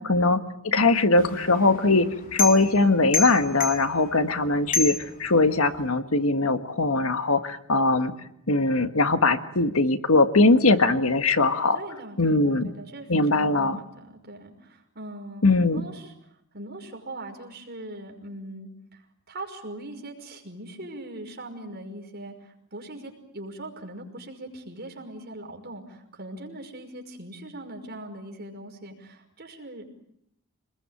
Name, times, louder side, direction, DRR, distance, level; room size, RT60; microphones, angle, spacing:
voice 1, 0.0-8.1 8.5-11.8 12.2-12.7 13.1-13.8 15.4-15.8, left 3 dB, 75° left, 9 dB, 1.6 m, -21 dB
sound 1, 1.2-5.9, left 5 dB, 40° left, 3.8 m, -32 dB
voice 2, 11.7-29.9, right 1 dB, 45° right, 3 dB, 5.6 m, -41 dB
27.5 x 20.5 x 9.0 m, 0.76 s
head